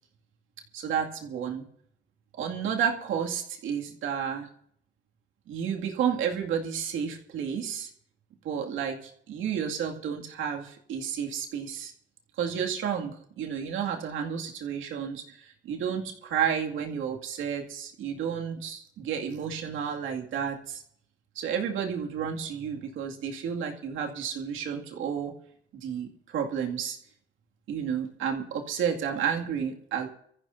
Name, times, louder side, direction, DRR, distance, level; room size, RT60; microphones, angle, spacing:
voice 1, 0.7-1.6 2.4-4.5 5.5-7.9 8.4-11.9 12.4-20.8 21.4-25.3 25.7-27.0 27.7-30.1, right 7 dB, 85° right, 2 dB, 2.2 m, -31 dB
24.0 x 14.5 x 2.7 m, 0.67 s
cardioid pair, 90°, 20 cm